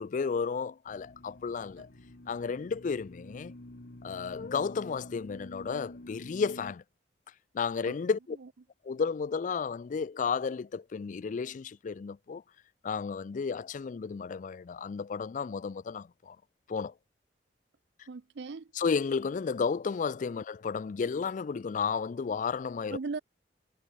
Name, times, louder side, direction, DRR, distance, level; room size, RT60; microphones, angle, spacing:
voice 1, 0.0-1.9 2.3-3.5 4.0-6.8 7.5-8.4 8.8-12.4 12.8-16.4 16.7-16.9 18.8-23.0, left 5 dB, 45° left, 0.4 m, -32 dB
sound 1, 0.9-6.7, left 1 dB, 70° left, 1.6 m, -48 dB
voice 2, 18.1-18.7 22.9-23.2, right 4 dB, 70° right, 0.5 m, -38 dB
head